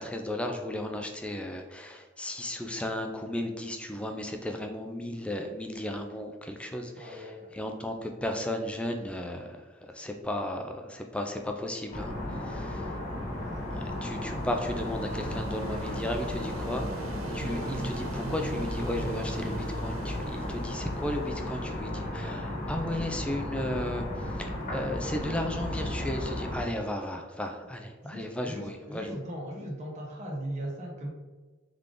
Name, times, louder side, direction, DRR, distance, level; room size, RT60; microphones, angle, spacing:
voice 1, 0.0-12.9 13.7-29.1, left 1 dB, 5° left, 4 dB, 0.3 m, -35 dB
voice 2, 6.9-7.6 12.5-13.0 28.0-31.1, right 1 dB, 35° right, -1 dB, 0.9 m, -39 dB
sound 1, 11.9-26.6, left 1 dB, 35° left, 1.3 m, -34 dB
sound 2, 13.3-22.1, right 4 dB, 75° right, 0.4 m, -43 dB
3.6 x 3.3 x 3.7 m, 1.3 s
head